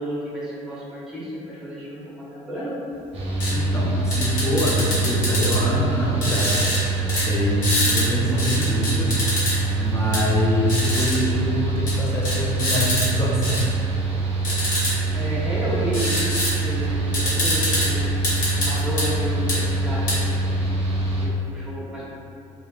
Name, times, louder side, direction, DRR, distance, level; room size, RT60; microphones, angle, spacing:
voice 1, 0.0-2.0 2.3-2.7 9.0-9.2 15.1-16.2 16.6-18.1 18.6-20.7 21.2-22.0, equal, 5° right, -9 dB, 1.0 m, -31 dB
Mechanical fan, 3.1-21.3, right 3 dB, 45° right, 0.6 m, -25 dB
sound 1, 3.4-3.5 4.1-5.6 6.2-6.8 7.1-7.3 7.6-8.1 8.4-9.6 10.1-10.2 10.7-11.2 11.9-12.0 12.3-13.1 13.4-13.6 14.4-14.9 15.9-16.5 16.8-16.9 17.1-17.9 18.2-19.1 19.5-19.6 20.1-20.2, left 1 dB, 70° left, 1.2 m, -24 dB
voice 2, 3.5-6.7 7.0-9.2 9.8-13.6, left 1 dB, 20° left, -4 dB, 0.4 m, -24 dB
3.0 x 2.2 x 2.4 m, 2.6 s
cardioid pair, 110°, 14 cm